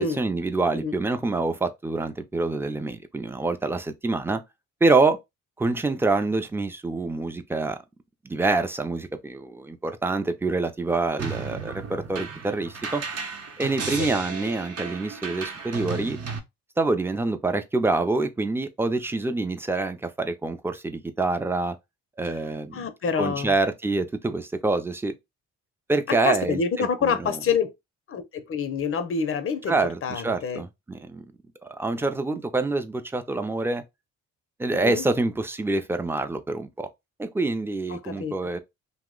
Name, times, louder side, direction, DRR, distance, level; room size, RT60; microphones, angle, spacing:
voice 1, 0.0-4.4 4.8-5.2 5.6-7.8 8.2-13.0 13.6-16.2 16.8-21.8 22.2-22.9 23.2-25.1 25.9-27.4 29.7-31.2 31.7-33.8 34.6-36.9 37.2-38.6, right 3 dB, 10° right, 0.4 m, -26 dB
sound 1, 11.2-16.4, right 5 dB, 55° right, 0.8 m, -34 dB
voice 2, 22.7-23.5 26.1-27.7 28.1-29.7 30.0-30.6 32.0-32.1 34.7-35.0 37.9-38.3, left 6 dB, 50° left, 0.6 m, -27 dB
2.8 x 2.1 x 3.7 m
cardioid pair, 85°, 30 cm